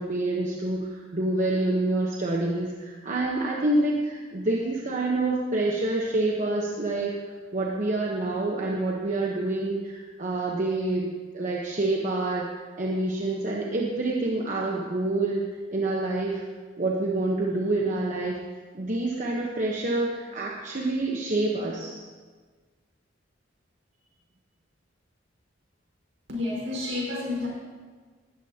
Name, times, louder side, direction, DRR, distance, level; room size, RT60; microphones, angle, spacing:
voice 1, 0.0-7.1 7.5-16.4 16.8-18.4 18.7-22.0, right 2 dB, 40° right, -2 dB, 1.1 m, -27 dB
voice 2, 26.3-27.5, left 2 dB, 65° right, -3 dB, 5.0 m, -30 dB
18.5 x 13.0 x 2.9 m, 1.5 s
head